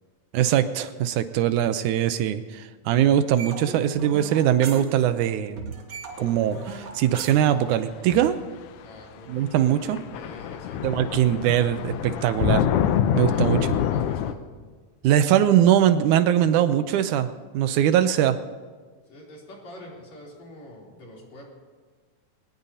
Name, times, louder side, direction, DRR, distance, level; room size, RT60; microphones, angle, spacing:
voice 1, 0.3-5.7 6.2-8.4 9.3-10.0 10.8-12.7 13.2-13.6 15.0-17.3 17.5-18.4, right 11 dB, 85° right, 11 dB, 2.1 m, -21 dB
sound 1, 3.4-5.3 5.6-8.4, right 4 dB, 60° right, 2.8 m, -37 dB
sound 2, 8.2-8.3 9.4-9.5 9.7-14.3, left 9 dB, 85° left, 2.2 m, -25 dB
voice 2, 8.8-11.3 13.3-14.4 19.1-21.4, left 1 dB, 60° left, -3 dB, 4.5 m, -45 dB
22.5 x 19.0 x 2.8 m, 1.5 s
omnidirectional pair, 3.6 m